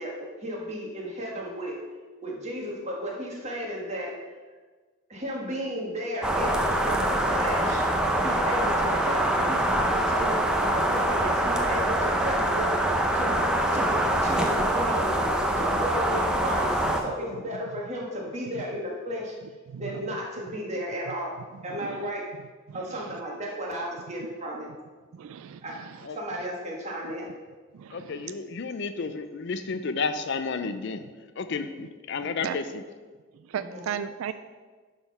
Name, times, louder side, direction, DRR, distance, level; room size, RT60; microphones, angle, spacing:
voice 1, 0.0-1.8 2.2-4.1 5.1-6.6 6.8-7.8 8.2-13.4 13.7-15.1 15.6-19.3 19.8-21.3 21.6-22.2 22.7-24.7 25.6-25.8 26.1-27.3 33.6-33.9, equal, 30° right, -2 dB, 1.6 m, -34 dB
sound 1, 6.2-17.0, right 1 dB, 5° right, 0.5 m, -24 dB
voice 2, 19.7-20.0 21.8-22.1 22.7-23.0 25.1-26.1 27.7-28.3 31.8-31.9 32.4-32.6 33.5-34.3, right 8 dB, 70° right, 11 dB, 0.3 m, -36 dB
voice 3, 27.9-31.0 31.4-32.8, left 4 dB, 55° left, 10 dB, 0.4 m, -31 dB
10.5 x 3.9 x 5.3 m, 1.4 s
head